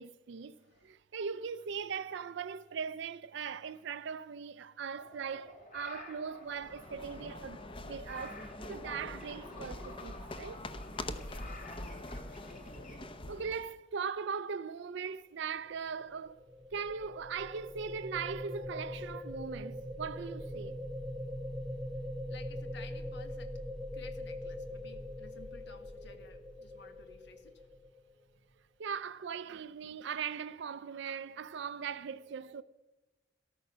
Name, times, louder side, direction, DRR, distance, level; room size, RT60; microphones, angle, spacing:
voice 1, 0.0-0.6 0.8-10.6 13.3-16.4 16.7-20.8 28.8-32.6, right 6 dB, 60° right, 0.4 m, -40 dB
voice 2, 0.6-1.0 11.2-11.5 22.3-23.6 23.9-27.7, left 4 dB, 60° left, 1.4 m, -55 dB
sound 1, 5.0-13.0, left 2 dB, 40° left, 3.1 m, -52 dB
sound 2, 6.5-13.7, left 1 dB, 25° left, 0.7 m, -44 dB
sound 3, 16.0-28.2, left 1 dB, ahead, 1.3 m, -42 dB
13.5 x 13.5 x 6.1 m
head